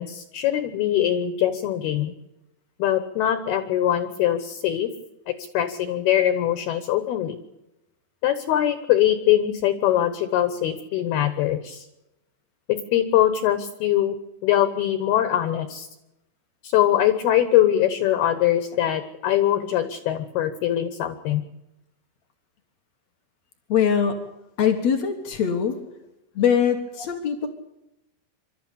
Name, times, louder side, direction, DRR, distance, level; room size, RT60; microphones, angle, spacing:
voice 1, 0.0-2.1 2.8-4.9 5.3-7.4 8.2-11.9 12.7-14.2 14.4-15.9 16.6-21.4, left 12 dB, 70° left, 11 dB, 2.6 m, -22 dB
voice 2, 23.7-24.2 24.6-25.8 26.3-27.5, left 8 dB, 85° left, 6 dB, 1.5 m, -22 dB
26.0 x 13.0 x 8.5 m, 0.92 s
omnidirectional pair, 5.7 m